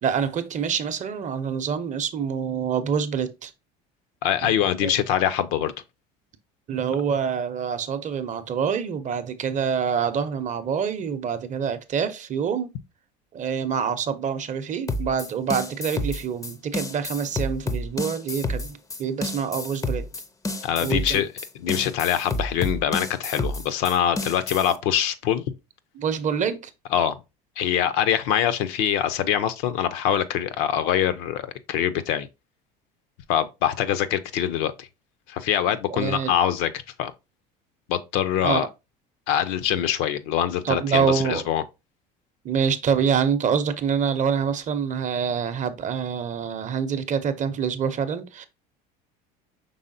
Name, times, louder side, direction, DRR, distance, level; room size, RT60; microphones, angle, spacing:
voice 1, 0.0-3.5 4.4-4.5 4.8-4.9 6.7-12.7 13.3-20.1 20.8-21.2 25.9-26.7 35.9-36.3 38.4-38.7 40.6-41.5 42.4-48.5, right 7 dB, 35° right, 0.6 m, -26 dB
voice 2, 4.2-5.7 20.6-21.3 21.6-25.4 26.9-27.2 27.6-31.4 31.7-32.3 33.3-34.9 35.3-36.7 37.0-37.1 37.9-38.7 39.3-41.6, left 10 dB, 70° left, 0.6 m, -24 dB
sound 1, 14.9-24.8, left 2 dB, 15° left, 0.5 m, -30 dB
5.5 x 3.4 x 2.6 m
supercardioid pair, 95°, 21 cm